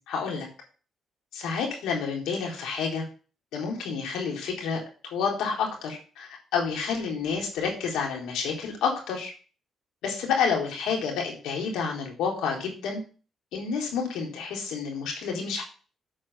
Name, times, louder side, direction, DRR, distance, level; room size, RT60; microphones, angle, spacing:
voice 1, 0.1-0.5 1.3-3.0 3.5-4.8 5.1-9.3 10.0-13.0 13.5-15.6, left 5 dB, 90° left, 0 dB, 4.0 m, -29 dB
8.8 x 4.9 x 6.8 m, 0.36 s
cardioid pair, 90°, 0 cm